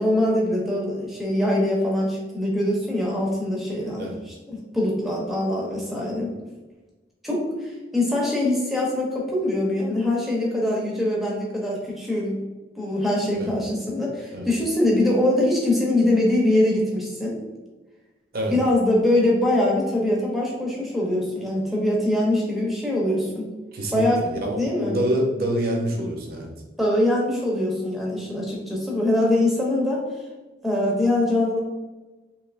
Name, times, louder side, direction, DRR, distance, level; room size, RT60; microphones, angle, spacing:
voice 1, 0.0-6.3 7.2-12.4 12.8-17.4 18.5-23.5 23.9-24.2 24.5-25.0 26.8-30.0 30.6-31.6, left 1 dB, ahead, -4 dB, 0.7 m, -23 dB
voice 2, 23.7-26.5, equal, 55° right, 1 dB, 0.6 m, -26 dB
3.2 x 2.9 x 2.4 m, 1.2 s
head